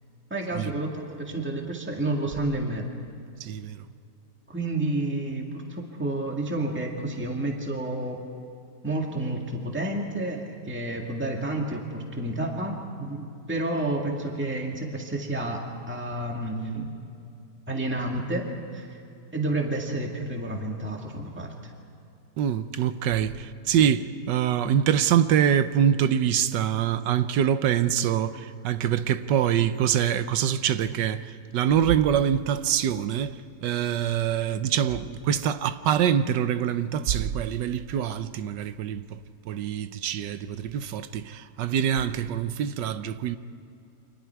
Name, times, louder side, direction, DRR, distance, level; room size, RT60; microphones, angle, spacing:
voice 1, 0.3-2.9 4.5-8.2 8.8-16.9 17.7-18.4 18.7-19.0 19.3-21.7, right 2 dB, 5° right, 2.0 m, -30 dB
voice 2, 3.4-3.8 22.4-39.2 39.5-43.4, right 9 dB, 90° right, 1.4 m, -25 dB
29.5 x 25.0 x 4.7 m
omnidirectional pair, 1.8 m